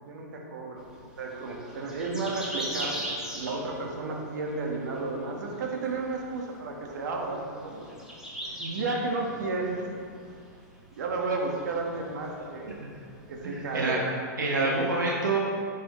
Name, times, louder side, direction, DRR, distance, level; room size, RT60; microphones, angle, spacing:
voice 1, 0.0-0.9 1.2-8.1 8.6-9.8 11.0-12.7 13.3-14.2 14.5-14.9, right 3 dB, 70° right, 1 dB, 1.4 m, -33 dB
sound 1, 0.8-13.8, right 1 dB, 5° right, 1.8 m, -42 dB
voice 2, 13.4-14.0 14.4-15.4, right 3 dB, 90° right, -2 dB, 1.0 m, -27 dB
9.7 x 6.3 x 3.1 m, 2.2 s
hypercardioid pair, 115°, 10 cm